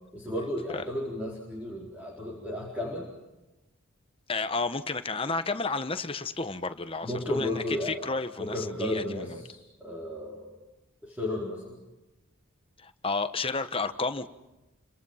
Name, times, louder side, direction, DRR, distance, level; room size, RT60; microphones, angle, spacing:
voice 1, 0.1-3.1 7.0-10.6 11.0-11.8, left 1 dB, 10° right, -3 dB, 4.3 m, -34 dB
voice 2, 4.3-9.4 12.8-14.3, left 3 dB, 25° left, 10 dB, 1.2 m, -32 dB
30.0 x 26.0 x 5.8 m, 1.0 s
head